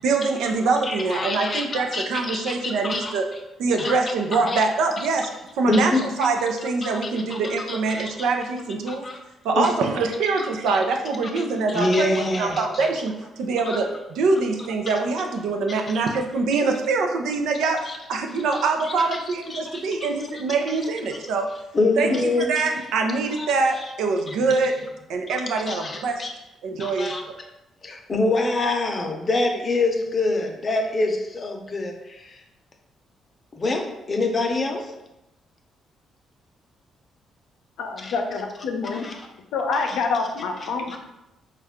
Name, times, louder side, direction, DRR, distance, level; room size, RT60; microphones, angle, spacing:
voice 1, 0.0-3.3 3.6-5.3 5.6-9.0 9.4-21.5 22.0-24.8 25.1-26.2 26.6-27.2, right 4 dB, 85° right, 4 dB, 0.5 m, -24 dB
voice 2, 0.8-3.2 3.8-3.9 4.3-4.6 5.7-6.1 6.8-8.3 8.9-9.2 9.5-9.7 11.3-11.4 11.7-12.9 13.7-13.8 15.7-15.8 17.9-18.0 18.8-19.2 19.5-19.8 21.7-22.5 23.4-23.5 23.8-23.9 24.3-24.4 25.7-26.3 26.8-27.2 27.8-32.4 33.5-34.9 38.0-38.1 38.9-39.1 40.9-41.0, left 2 dB, 35° left, 3 dB, 0.7 m, -26 dB
voice 3, 37.8-39.1 39.5-41.0, left 4 dB, 85° left, 3 dB, 0.5 m, -26 dB
4.3 x 2.4 x 3.5 m, 0.93 s
cardioid pair, 90°, 0 cm